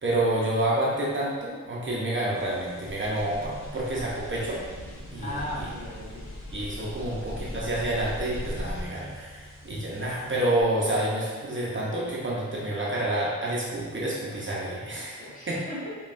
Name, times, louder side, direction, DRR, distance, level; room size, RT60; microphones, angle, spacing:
voice 1, 0.0-4.6 5.1-5.3 6.5-15.6, right 1 dB, 40° right, -5 dB, 0.6 m, -28 dB
sound 1, 2.3-10.6, left 1 dB, 55° left, 1.0 m, -40 dB
voice 2, 5.2-6.3 6.9-7.4 15.2-15.9, left 1 dB, 25° left, -8 dB, 1.1 m, -38 dB
5.3 x 2.3 x 2.5 m, 1.5 s
wide cardioid pair, 115°, 31 cm